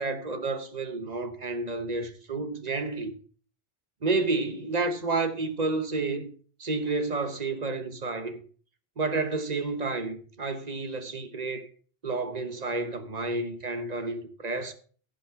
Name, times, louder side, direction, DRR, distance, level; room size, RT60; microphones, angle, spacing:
voice 1, 0.0-3.1 4.0-6.3 6.6-8.4 9.0-11.7 12.0-14.7, right 3 dB, 40° right, 1.1 m, -30 dB
14.5 x 5.3 x 5.7 m
omnidirectional pair, 1.2 m